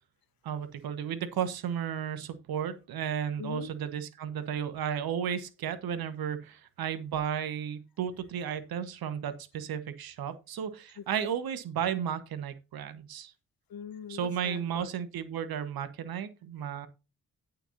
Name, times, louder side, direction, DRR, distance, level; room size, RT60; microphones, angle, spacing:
voice 1, 0.4-13.3 14.1-16.9, right 8 dB, 65° right, 1.4 m, -34 dB
voice 2, 3.4-3.7 11.0-11.4 13.7-14.9, left 8 dB, 60° left, 1.3 m, -42 dB
11.0 x 9.0 x 2.8 m
hypercardioid pair, 40°, 40 cm